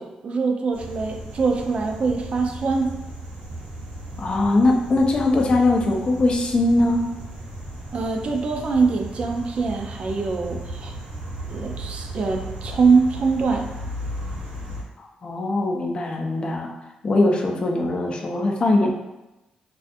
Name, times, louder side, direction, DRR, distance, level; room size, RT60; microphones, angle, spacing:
voice 1, 0.0-2.9 7.9-10.9 11.5-13.7, right 4 dB, 50° right, 2 dB, 0.3 m, -23 dB
sound 1, 0.7-14.8, right 1 dB, 75° right, 0.8 m, -35 dB
voice 2, 4.2-7.1 15.0-16.7 17.0-18.9, left 2 dB, 40° left, 1 dB, 0.4 m, -21 dB
2.4 x 2.3 x 2.5 m, 0.98 s
cardioid pair, 95°, 3 cm